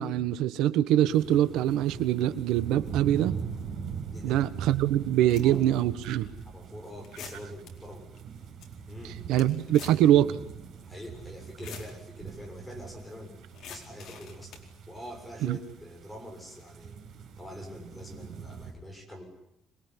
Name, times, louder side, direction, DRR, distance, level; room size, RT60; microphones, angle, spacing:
voice 1, 0.0-3.4 4.2-6.3 9.3-10.4 15.4-15.6, right 12 dB, 75° right, 12 dB, 1.3 m, -24 dB
sound 1, 1.1-18.7, right 7 dB, 55° right, 7.0 m, -42 dB
voice 2, 4.1-4.5 5.3-5.6 6.5-8.1 8.9-9.2 10.8-13.3 13.7-14.6 14.9-17.0 17.4-19.2, equal, 5° left, 1 dB, 7.0 m, -44 dB
sound 2, 4.4-4.5 5.1-5.7 6.3-6.4 7.0-7.7 8.2-8.3 8.4-8.7 9.0-10.1 10.3-10.4 11.4-11.9 13.5-14.7, left 6 dB, 50° left, 4.5 m, -45 dB
26.5 x 21.5 x 9.9 m, 0.82 s
cardioid pair, 180°, 0 cm